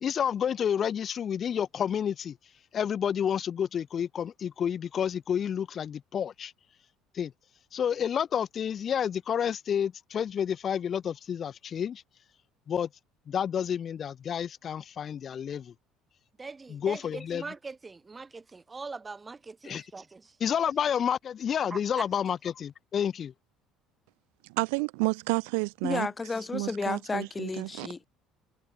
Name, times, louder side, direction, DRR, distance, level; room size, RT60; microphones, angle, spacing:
voice 1, 0.0-2.4 2.7-6.5 7.1-7.3 7.7-12.0 12.7-12.9 13.3-15.7 16.7-17.4 19.7-19.8 20.4-23.3, left 8 dB, 40° left, 0.7 m, -30 dB
voice 2, 16.4-20.4 21.7-22.1, right 4 dB, 20° right, 2.3 m, -42 dB
voice 3, 24.5-26.1 26.5-27.9, right 35 dB, 90° right, 0.5 m, -30 dB
voice 4, 25.8-28.1, left 4 dB, 20° left, 1.0 m, -32 dB
supercardioid pair, 105°, 0 cm